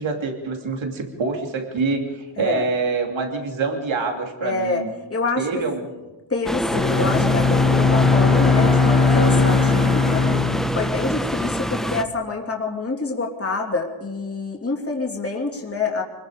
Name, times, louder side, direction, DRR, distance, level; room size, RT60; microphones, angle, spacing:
voice 1, 0.0-4.9 5.4-5.9, right 4 dB, 90° right, 3 dB, 2.9 m, -26 dB
voice 2, 4.4-4.8 5.1-5.5 6.3-10.3 10.7-16.0, left 3 dB, 30° left, 0 dB, 2.9 m, -26 dB
sound 1, 6.4-12.0, equal, ahead, 0.8 m, -25 dB
Bowed string instrument, 6.7-11.7, left 4 dB, 75° left, 4.9 m, -19 dB
25.5 x 20.5 x 5.0 m, 1.2 s
wide cardioid pair, 145°, 45 cm